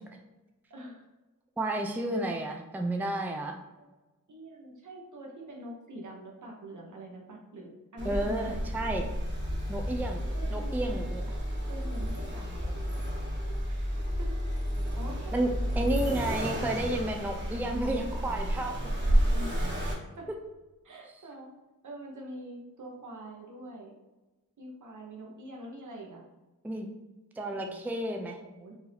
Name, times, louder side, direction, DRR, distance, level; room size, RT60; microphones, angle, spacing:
voice 1, 0.7-1.0 3.7-3.9 4.3-8.6 10.3-11.0 11.7-12.8 13.7-14.7 14.9-15.3 15.7-16.1 19.3-19.7 20.2-20.3 20.8-21.5 21.8-23.9 24.6-26.2 27.5-27.9 28.4-28.7, equal, 65° right, -1 dB, 1.1 m, -45 dB
voice 2, 1.6-3.6 8.0-9.1 9.7-10.2 10.5-11.4 15.3-15.5 15.8-18.8 26.6-26.9 27.4-28.4, right 1 dB, 5° right, 3 dB, 0.4 m, -31 dB
Accelerating revving vroom, 8.0-19.9, equal, 35° right, 1.3 m, -31 dB
4.5 x 2.7 x 3.3 m, 1.1 s
wide cardioid pair, 75°, 33 cm